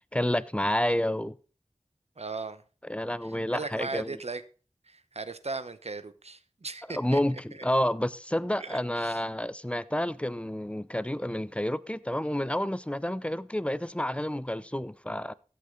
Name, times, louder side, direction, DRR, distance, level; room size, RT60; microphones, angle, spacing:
voice 1, 0.1-1.4 2.9-4.2 6.9-15.3, left 1 dB, 10° left, 0.6 m, -29 dB
voice 2, 2.2-2.6 3.2-4.4 4.8-7.6 8.6-9.2, right 3 dB, 65° right, 0.9 m, -38 dB
15.0 x 8.5 x 3.8 m
wide cardioid pair, 40°, 12 cm